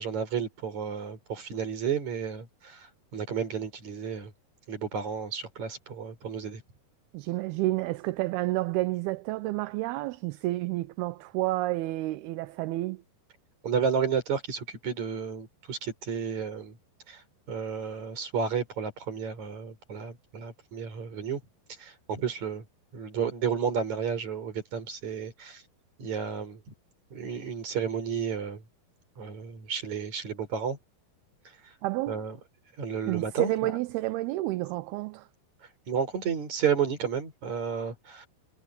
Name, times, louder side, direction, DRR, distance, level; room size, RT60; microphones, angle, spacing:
voice 1, 0.0-4.3 4.7-6.6 13.6-16.8 17.1-21.4 21.8-22.6 22.9-25.6 26.0-26.6 27.1-28.6 29.2-30.8 32.1-32.4 32.8-33.7 35.9-38.3, right 7 dB, 45° right, 6.0 m, -32 dB
voice 2, 7.1-13.0 31.8-32.2 33.1-35.3, right 18 dB, 80° right, 2.5 m, -30 dB
omnidirectional pair, 4.8 m